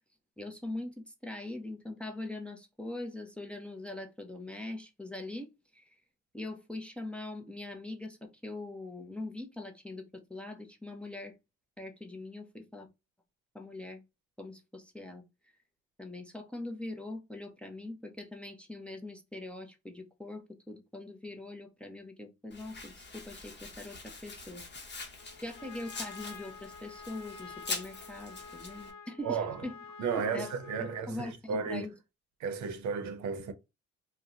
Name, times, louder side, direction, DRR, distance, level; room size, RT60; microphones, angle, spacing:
voice 1, 0.4-5.5 5.7-5.8 6.3-11.3 11.8-12.9 13.5-14.0 14.4-15.3 16.0-24.6 25.4-29.7 30.1-31.9, left 2 dB, 5° left, 0.6 m, -42 dB
Domestic sounds home sounds, 22.5-28.9, left 3 dB, 35° left, 1.0 m, -44 dB
Trumpet, 25.2-31.2, left 5 dB, 65° left, 0.7 m, -49 dB
voice 2, 29.2-29.6 30.0-31.9 32.4-33.5, right 5 dB, 70° right, 0.7 m, -33 dB
2.7 x 2.1 x 3.6 m
cardioid pair, 90°, 30 cm